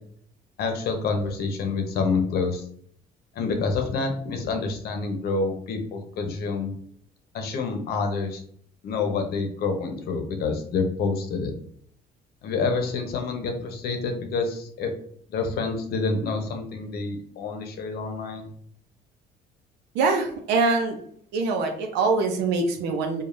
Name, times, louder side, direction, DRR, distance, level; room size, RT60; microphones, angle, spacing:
voice 1, 0.6-2.6 3.3-6.7 7.3-8.4 8.8-11.5 12.4-14.9 15.3-18.5, left 4 dB, 70° left, 5 dB, 0.8 m, -27 dB
voice 2, 19.9-21.0 21.3-23.2, right 4 dB, 90° right, 3 dB, 0.7 m, -23 dB
5.0 x 2.4 x 2.6 m, 0.63 s
cardioid pair, 110°, 17 cm